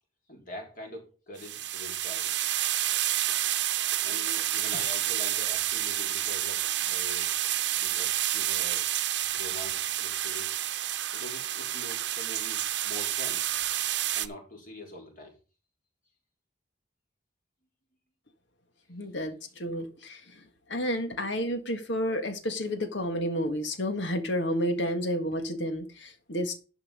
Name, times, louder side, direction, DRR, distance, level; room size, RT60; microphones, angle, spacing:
voice 1, 0.3-2.3 4.0-7.3 7.7-8.9 9.3-10.5 11.1-13.4 14.1-15.3, left 1 dB, 45° left, 4.4 m, -44 dB
sound 1, 1.4-14.3, right 13 dB, 70° right, 0.8 m, -29 dB
voice 2, 18.9-20.2 20.7-26.6, equal, 75° left, 1.9 m, -30 dB
12.0 x 5.6 x 5.3 m
head